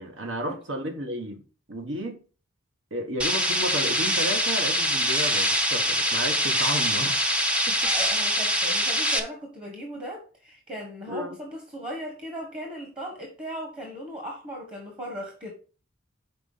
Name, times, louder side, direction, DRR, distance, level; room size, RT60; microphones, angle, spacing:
voice 1, 0.0-1.4 1.7-2.2 2.9-7.2 7.7-7.9 11.1-11.4, equal, 70° right, 1.6 m, -32 dB
sound 1, 3.2-9.2, equal, 5° right, 0.7 m, -24 dB
voice 2, 7.8-15.5, equal, 25° right, 1.4 m, -37 dB
6.0 x 4.3 x 5.5 m
head